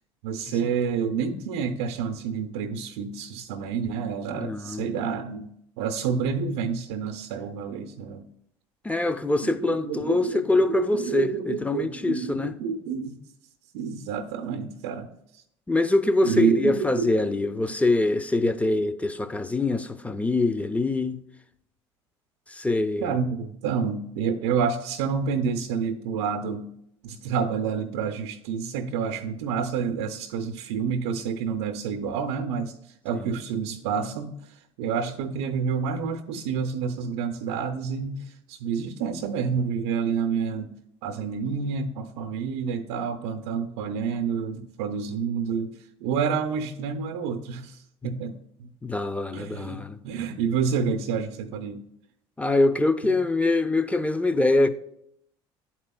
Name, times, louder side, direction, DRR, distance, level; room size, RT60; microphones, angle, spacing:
voice 1, 0.2-8.2 9.4-13.2 13.7-15.1 16.2-17.1 18.4-18.5 23.0-26.7 27.0-32.8 33.0-34.4 34.8-40.7 41.0-45.7 46.0-48.7 49.3-51.8 53.0-53.1, right 6 dB, 75° right, 0.5 m, -29 dB
voice 2, 4.3-4.9 8.8-12.5 15.7-21.2 22.5-23.1 33.1-33.3 48.8-50.0 52.4-54.7, left 2 dB, 10° left, 0.6 m, -24 dB
11.0 x 4.3 x 2.2 m
hypercardioid pair, 65°, 14 cm